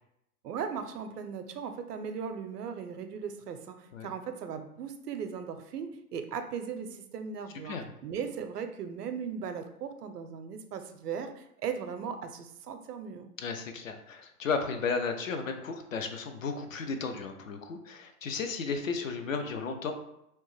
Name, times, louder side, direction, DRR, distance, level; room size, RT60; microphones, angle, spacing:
voice 1, 0.4-7.8 8.0-13.3, right 6 dB, 80° right, 8 dB, 0.6 m, -38 dB
voice 2, 13.4-19.9, left 5 dB, 60° left, 6 dB, 0.5 m, -34 dB
2.9 x 2.1 x 3.1 m, 0.81 s
hypercardioid pair, 145°, 47 cm